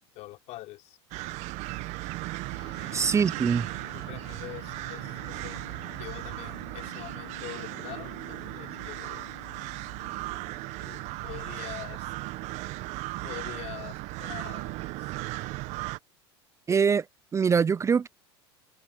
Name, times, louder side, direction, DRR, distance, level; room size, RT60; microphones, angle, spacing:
voice 1, 0.0-1.0 2.8-3.3 3.9-5.6 6.0-9.3 10.8-12.1 13.2-15.2, left 17 dB, 55° left, 6.0 m, -44 dB
sound 1, 1.1-16.0, right 21 dB, 55° right, 1.5 m, -37 dB
sound 2, 2.5-12.2, left 12 dB, 85° left, 3.4 m, -51 dB
voice 2, 2.9-3.7 16.7-17.1 17.3-18.1, right 6 dB, 20° right, 0.5 m, -23 dB
hypercardioid pair, 90°, 14 cm